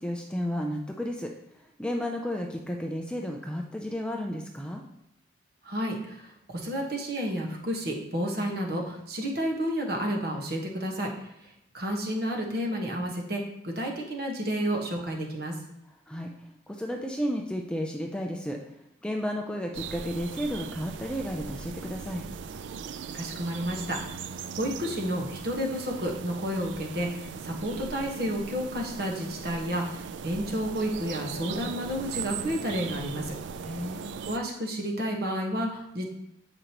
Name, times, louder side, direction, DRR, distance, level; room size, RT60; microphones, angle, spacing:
voice 1, 0.0-1.3 1.8-4.8 16.1-16.3 16.7-18.6 19.0-22.3 33.6-34.1, equal, 5° left, 1 dB, 0.4 m, -32 dB
voice 2, 5.6-11.1 11.4-15.5 23.1-33.3 34.2-36.1, equal, 55° right, 0 dB, 1.3 m, -31 dB
sound 1, 19.7-34.4, right 6 dB, 75° right, 0.3 m, -39 dB
7.9 x 5.0 x 3.0 m, 0.84 s
head